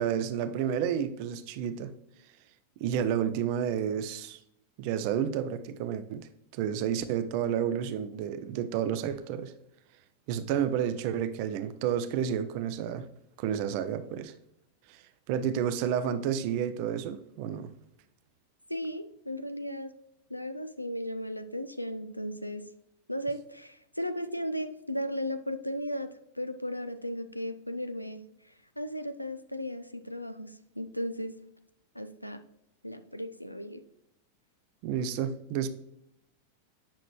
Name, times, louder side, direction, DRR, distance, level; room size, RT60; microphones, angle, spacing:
voice 1, 0.0-1.9 2.8-4.4 4.8-9.5 10.3-13.1 13.4-14.3 14.9-15.0 15.3-17.7 34.8-35.7, right 9 dB, 45° right, 0.5 m, -30 dB
voice 2, 18.7-19.9 20.3-22.6 23.1-26.1 26.3-28.2 28.8-31.3 31.9-32.4 32.8-33.8, equal, 90° left, 0.4 m, -35 dB
8.6 x 6.0 x 3.0 m
figure-of-eight pair, 90°, 0 cm